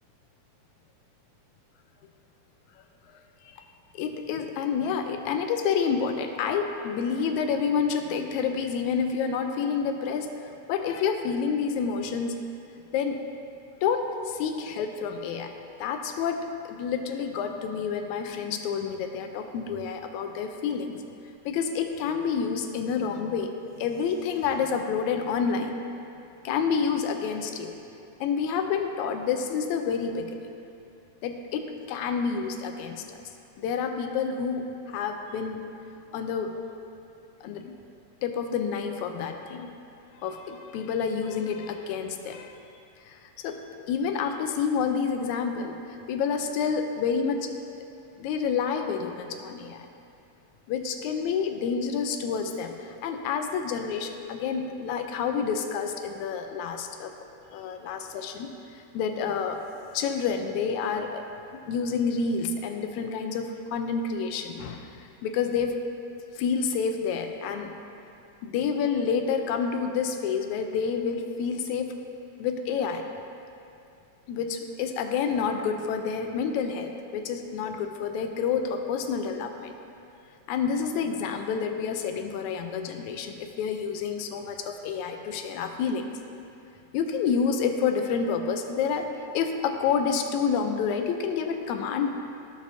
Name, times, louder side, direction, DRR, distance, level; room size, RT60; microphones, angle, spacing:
voice 1, 3.9-12.3 12.9-13.2 13.8-15.5 15.8-21.0 21.5-23.5 23.8-25.8 26.4-27.8 28.2-30.4 31.2-33.2 33.6-35.6 36.1-36.5 37.4-37.8 38.2-39.7 40.2-42.5 43.1-43.6 43.9-45.8 46.1-47.5 48.2-49.8 50.7-57.1 57.5-58.5 58.9-59.6 59.9-61.3 61.7-65.8 66.4-67.7 68.4-72.0 72.4-73.0 74.3-79.7 80.5-86.2 86.9-89.1 89.3-92.1, left 6 dB, 85° left, 5 dB, 2.0 m, -29 dB
14.5 x 6.1 x 2.7 m, 2.7 s
omnidirectional pair, 3.3 m